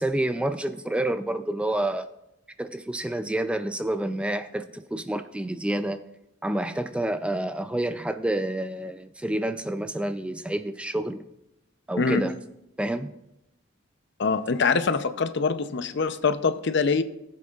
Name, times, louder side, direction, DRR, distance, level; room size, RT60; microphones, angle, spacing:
voice 1, 0.0-2.1 2.6-6.0 6.4-11.2 11.9-12.3 12.8-13.2, right 1 dB, 5° right, 10 dB, 0.3 m, -28 dB
voice 2, 14.2-17.0, left 4 dB, 60° left, 11 dB, 0.6 m, -24 dB
17.5 x 7.6 x 2.4 m, 0.86 s
head